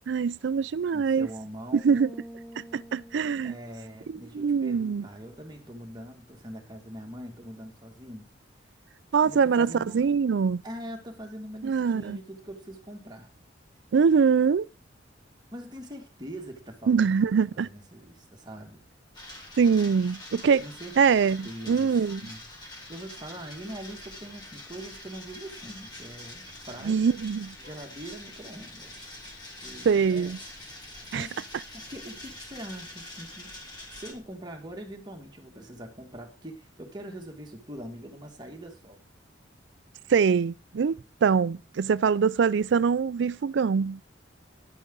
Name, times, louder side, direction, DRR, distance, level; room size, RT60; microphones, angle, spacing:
voice 1, 0.1-1.3 1.7-2.1 2.6-3.6 4.1-5.0 9.1-10.6 11.6-12.2 13.9-14.7 16.9-17.7 19.6-20.6 21.0-22.2 26.8-27.5 29.9-30.4 31.1-31.3 40.1-44.0, right 6 dB, 65° right, 0.4 m, -23 dB
voice 2, 0.9-2.0 3.4-8.3 9.2-10.1 10.6-13.3 15.5-18.8 20.6-21.0 21.4-22.4 22.9-27.1 27.6-29.0 29.6-30.3 30.8-31.4 31.7-33.6 33.9-39.0, right 1 dB, 25° right, 2.1 m, -42 dB
sound 1, 1.9-5.6, right 1 dB, ahead, 0.7 m, -48 dB
sound 2, 19.1-34.1, left 1 dB, 25° left, 2.7 m, -45 dB
sound 3, 23.2-34.4, equal, 45° left, 2.5 m, -59 dB
11.0 x 8.1 x 3.9 m
head